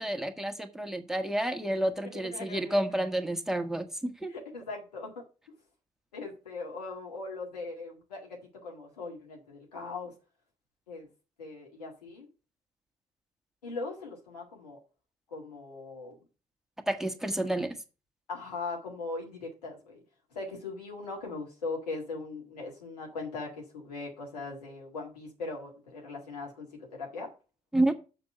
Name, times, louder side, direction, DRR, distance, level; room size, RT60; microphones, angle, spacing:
voice 1, 0.0-4.3 16.9-17.8 27.7-27.9, right 1 dB, ahead, 1.5 m, -30 dB
voice 2, 2.0-2.8 4.3-5.2 6.1-10.1 10.9-11.1 11.4-12.3 13.6-14.8 15.3-16.2 18.3-20.0 20.3-27.3, left 3 dB, 85° left, 1.9 m, -40 dB
6.9 x 5.4 x 6.7 m
figure-of-eight pair, 40°, 20 cm